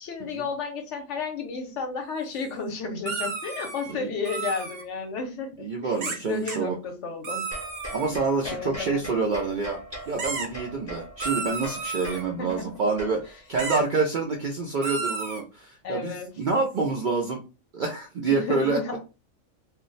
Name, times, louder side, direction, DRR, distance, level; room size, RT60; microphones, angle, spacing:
voice 1, 0.0-7.5 8.4-9.0 12.4-12.6 15.8-16.3 18.3-19.0, left 4 dB, 65° left, 5 dB, 1.0 m, -32 dB
sound 1, 3.1-3.9 4.2-4.8 6.0-6.2 6.5-6.6 7.2-8.1 10.2-10.5 11.2-12.2 13.6-13.8 14.8-15.4, right 4 dB, 65° right, 1.0 m, -32 dB
voice 2, 5.6-6.8 7.9-9.8 10.1-17.4 17.7-18.8, right 4 dB, 85° right, 1 dB, 0.4 m, -27 dB
sound 2, 7.5-14.1, right 1 dB, 15° left, 0.5 m, -41 dB
2.5 x 2.0 x 3.8 m, 0.31 s
omnidirectional pair, 1.4 m